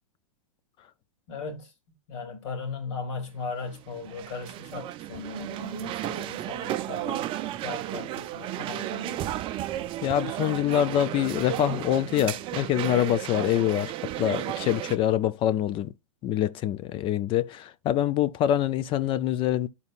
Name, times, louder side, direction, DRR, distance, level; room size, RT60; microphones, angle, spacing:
voice 1, 1.3-1.7 2.1-9.4, left 4 dB, 60° left, 2.8 m, -38 dB
sound 1, 3.4-15.0, right 13 dB, 30° right, 0.5 m, -33 dB
voice 2, 10.0-13.9 14.2-15.9 16.2-19.7, left 11 dB, 30° left, 0.5 m, -25 dB
12.0 x 4.2 x 2.4 m
hypercardioid pair, 110°, 17 cm